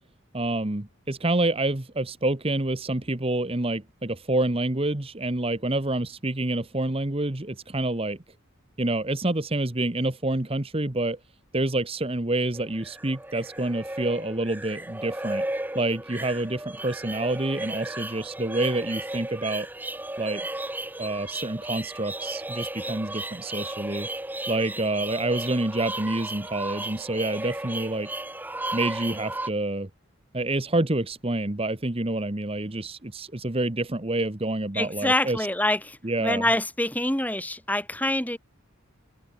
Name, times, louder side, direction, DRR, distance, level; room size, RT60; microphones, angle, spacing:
voice 1, 0.3-8.2 8.8-11.2 11.5-15.4 15.7-19.7 20.2-20.4 21.0-24.1 24.5-28.1 28.7-29.9 30.3-35.5 36.0-36.5, right 2 dB, 25° right, 1.2 m, -27 dB
sound 1, 12.5-29.5, right 1 dB, 10° right, 1.4 m, -34 dB
voice 2, 34.7-38.4, left 1 dB, 5° left, 3.1 m, -26 dB
head